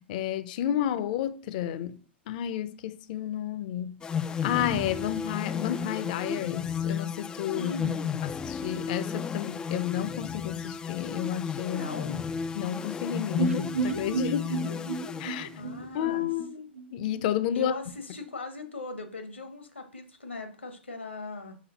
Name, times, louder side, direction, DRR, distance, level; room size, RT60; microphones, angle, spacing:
voice 1, 0.0-2.0 2.3-4.0 4.4-7.7 8.2-11.9 12.6-14.7 15.2-15.5 15.9-17.7, left 11 dB, 45° left, 0.6 m, -31 dB
sound 1, 4.0-15.9, left 6 dB, 15° left, 0.3 m, -33 dB
voice 2, 7.5-8.2 11.7-12.2 15.3-16.3 17.5-21.6, left 3 dB, 80° left, 1.6 m, -39 dB
sound 2, 13.4-17.2 17.5-17.6 17.9-18.0, right 5 dB, 85° right, 0.8 m, -33 dB
6.2 x 5.5 x 4.1 m
figure-of-eight pair, 110°, 6 cm